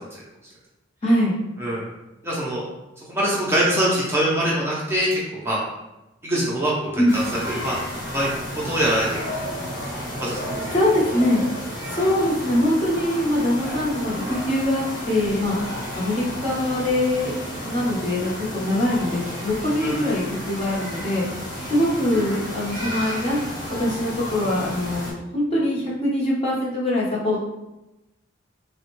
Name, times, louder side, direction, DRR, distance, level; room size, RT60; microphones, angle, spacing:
voice 1, 1.0-1.4 7.0-7.1 10.7-11.4 11.9-15.6 15.9-17.3 17.6-21.3 21.7-23.4 23.8-25.1 25.3-27.4, left 1 dB, 30° left, -6 dB, 0.8 m, -23 dB
voice 2, 2.2-2.6 3.1-5.6 6.2-7.8 8.1-9.4 10.2-10.5 19.8-20.1, right 1 dB, 10° right, -6 dB, 0.5 m, -24 dB
sound 1, 7.1-25.1, equal, 70° left, 1.0 m, -32 dB
3.4 x 2.1 x 3.0 m, 0.98 s
head